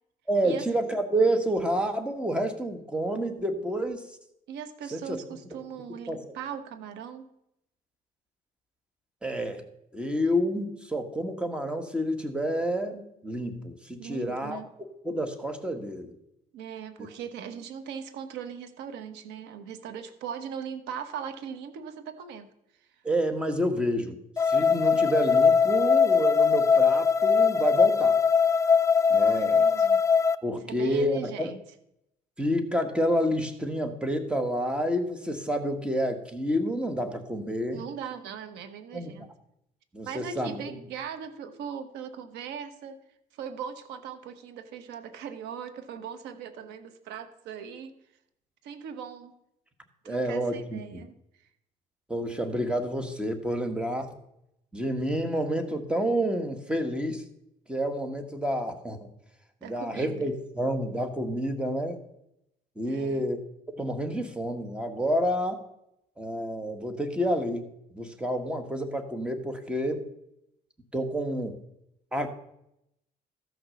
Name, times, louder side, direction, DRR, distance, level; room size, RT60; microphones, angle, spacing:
voice 1, 0.3-4.1 4.9-5.2 6.1-6.2 9.2-9.6 9.9-14.6 15.0-16.1 23.0-24.1 24.4-28.2 29.1-29.7 30.4-31.5 32.4-37.8 38.9-39.1 39.9-40.6 50.0-51.0 52.1-54.1 54.7-57.2 57.7-59.1 59.6-62.0 62.8-63.4 63.8-65.6 66.2-67.7 67.9-70.0 70.9-71.6 72.1-72.3, equal, 5° right, 6 dB, 1.5 m, -29 dB
voice 2, 4.5-7.3 14.0-14.7 16.5-22.5 22.9-23.0 29.1-30.0 30.6-31.6 37.7-39.3 40.0-43.0 43.3-47.9 48.6-49.3 50.0-51.5 59.6-60.3 62.8-63.3, right 7 dB, 90° right, 9 dB, 1.2 m, -39 dB
sound 1, 24.4-30.3, left 6 dB, 15° left, 0.5 m, -21 dB
14.5 x 6.0 x 6.4 m, 0.79 s
cardioid pair, 110°, 17 cm